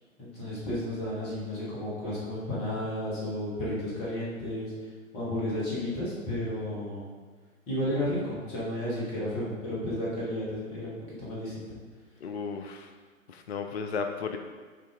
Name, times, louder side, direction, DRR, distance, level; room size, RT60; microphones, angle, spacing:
voice 1, 0.2-4.7 5.1-7.1 7.7-11.8, left 1 dB, 15° left, -7 dB, 1.4 m, -32 dB
voice 2, 12.2-12.9 13.3-14.4, left 5 dB, 50° left, 6 dB, 0.4 m, -34 dB
6.3 x 4.3 x 3.5 m, 1.5 s
figure-of-eight pair, 125°, 41 cm